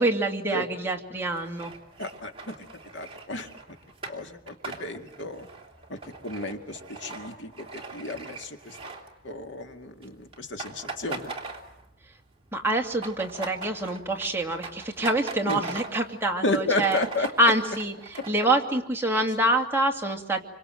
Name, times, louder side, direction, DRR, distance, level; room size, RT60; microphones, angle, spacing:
voice 1, 0.0-1.7 12.5-17.0 17.4-20.4, right 1 dB, 10° right, 1 dB, 2.5 m, -26 dB
sound 1, 1.2-9.6 9.9-10.1 10.3-12.1 12.4-16.2 16.5-16.6 16.8-18.3, right 3 dB, 30° right, 3.2 m, -40 dB
voice 2, 2.0-2.5 2.9-3.5 4.1-5.5 5.9-6.0 6.2-8.8 9.2-11.3 15.5-15.6 16.4-17.3, left 2 dB, 70° left, 6 dB, 2.3 m, -32 dB
28.0 x 25.5 x 7.8 m, 0.75 s
head